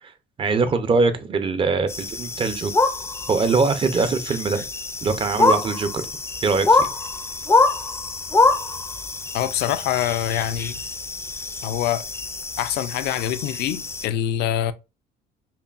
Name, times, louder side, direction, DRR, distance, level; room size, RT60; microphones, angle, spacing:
voice 1, 0.4-2.7 3.3-4.6 5.0-6.1 6.4-6.9, right 4 dB, 30° right, 0.6 m, -22 dB
sound 1, 1.9-14.1, left 3 dB, 15° left, 0.4 m, -25 dB
voice 2, 9.3-10.8 11.6-12.0 12.6-14.7, left 11 dB, 80° left, 0.4 m, -25 dB
5.5 x 2.3 x 2.4 m
cardioid pair, 110°, 17 cm